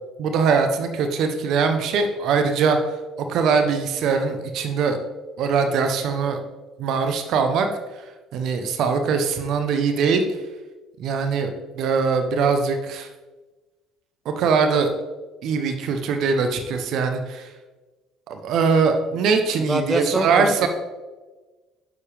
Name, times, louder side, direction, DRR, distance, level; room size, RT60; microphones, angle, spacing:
voice 1, 0.2-2.8 3.3-5.0 5.4-6.4 6.8-7.7 7.9-8.0 8.3-10.2 11.0-13.1 14.2-14.9 15.4-17.5 18.3-20.7, right 5 dB, 65° right, 7 dB, 1.0 m, -22 dB
voice 2, 19.5-20.7, right 1 dB, 10° right, 8 dB, 0.9 m, -25 dB
9.7 x 7.2 x 3.5 m, 1.2 s
hypercardioid pair, 60°, 0 cm